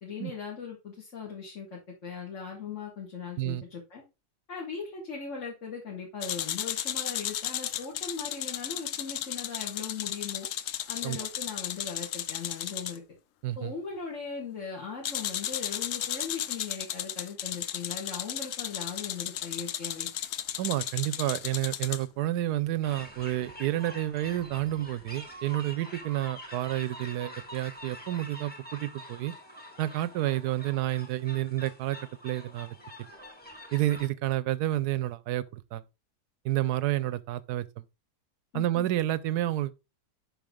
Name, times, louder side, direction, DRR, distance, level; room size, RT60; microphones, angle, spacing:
voice 1, 0.0-4.0 4.5-10.5 10.9-13.0 13.6-20.1 38.5-38.9, left 5 dB, 50° left, 2.0 m, -39 dB
sound 1, 6.2-13.0 15.0-22.0, left 11 dB, 65° left, 0.8 m, -34 dB
voice 2, 13.4-13.7 20.6-29.3 29.8-32.8 33.7-35.8 36.4-37.7 38.5-39.7, right 14 dB, 80° right, 1.1 m, -30 dB
sound 2, 22.8-34.1, equal, 5° left, 1.5 m, -46 dB
7.0 x 5.4 x 3.6 m
omnidirectional pair, 1.7 m